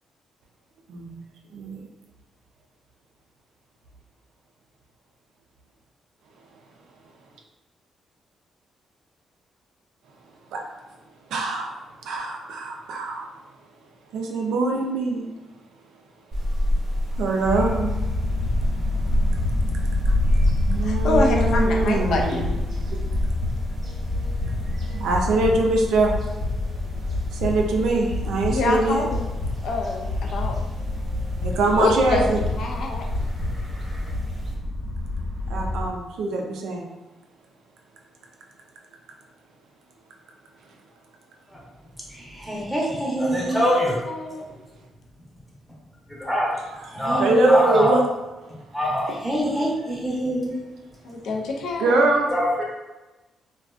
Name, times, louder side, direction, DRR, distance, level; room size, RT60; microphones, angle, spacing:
voice 1, 0.9-1.2 1.5-1.8 10.5-10.6 11.3-11.8 12.0-13.3 14.1-15.3 17.1-18.1 20.6-23.0 24.9-26.1 27.3-29.1 31.4-32.4 35.5-36.9 43.5-43.7 46.6-48.0 49.1-49.2 49.5-49.6 51.8-52.3, right 2 dB, 85° right, 1 dB, 0.4 m, -23 dB
sound 1, 16.3-34.6, equal, 55° right, 0.7 m, -29 dB
sound 2, 17.4-35.9, left 2 dB, 55° left, 1.0 m, -28 dB
voice 2, 20.8-22.5 28.5-29.2 29.6-30.6 31.8-32.3 32.6-33.0 43.6-44.4 51.0-52.2, left 2 dB, 75° left, 1 dB, 0.4 m, -26 dB
voice 3, 42.1-43.9 46.1-46.5 46.9-48.0 48.7-50.5 52.3-52.6, equal, ahead, -5 dB, 0.7 m, -24 dB
2.4 x 2.2 x 2.3 m, 1.1 s
cardioid pair, 75°, 0 cm